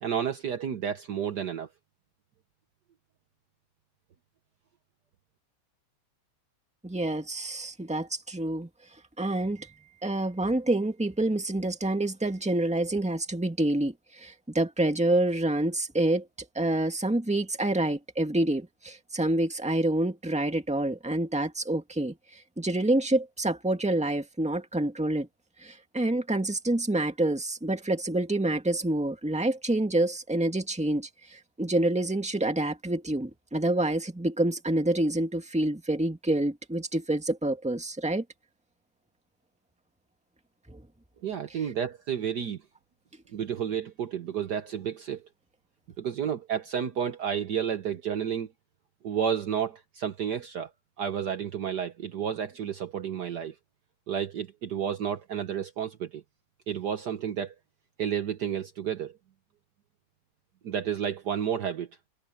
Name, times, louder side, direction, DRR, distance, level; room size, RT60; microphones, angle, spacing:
voice 1, 0.0-1.7 41.2-42.6 43.3-45.3 46.0-48.5 49.0-50.7 51.0-53.5 54.1-56.2 56.7-57.5 58.0-59.2 60.6-61.9, right 8 dB, 60° right, 1.5 m, -31 dB
voice 2, 6.8-8.7 9.2-9.7 10.0-16.3 16.6-25.3 25.6-38.2 40.7-40.8, right 1 dB, 5° right, 1.8 m, -27 dB
omnidirectional pair, 2.3 m